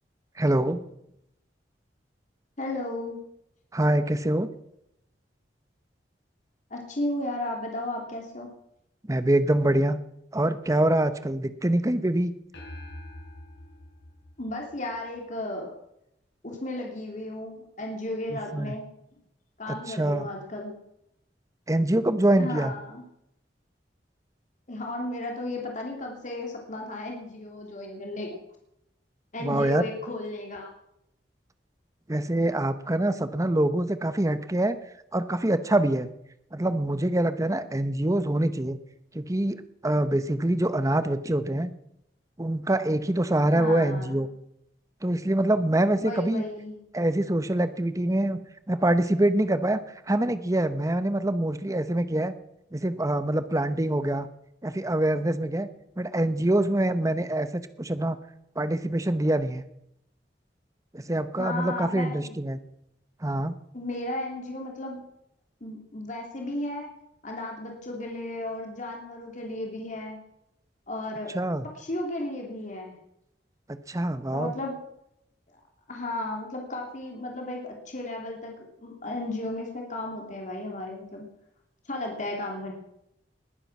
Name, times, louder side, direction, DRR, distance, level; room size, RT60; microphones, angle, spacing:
voice 1, 0.4-0.8 3.7-4.5 9.1-10.0 10.3-12.3 18.3-18.7 19.7-20.3 21.7-22.7 29.4-29.8 32.1-34.8 35.1-36.1 36.5-38.8 39.1-41.7 42.4-44.3 45.0-46.4 46.9-48.4 48.7-49.8 50.1-52.3 52.7-54.3 54.6-55.7 56.0-58.2 58.6-59.6 60.9-62.6 63.2-63.5 71.3-71.7 73.7-74.5, right 1 dB, 20° right, 12 dB, 0.9 m, -25 dB
voice 2, 2.6-3.2 6.7-8.5 14.4-15.7 16.4-18.9 19.6-20.7 22.4-23.0 24.7-28.4 29.3-30.7 43.5-44.1 46.0-46.8 61.4-62.3 63.7-65.0 65.6-66.9 67.2-70.2 70.9-71.4 71.7-72.9 74.3-74.8 75.9-81.2 81.9-82.7, left 1 dB, 45° left, 0 dB, 3.0 m, -34 dB
sound 1, 12.5-15.2, left 1 dB, 75° left, 5.5 m, -44 dB
20.0 x 9.7 x 6.1 m, 0.79 s
head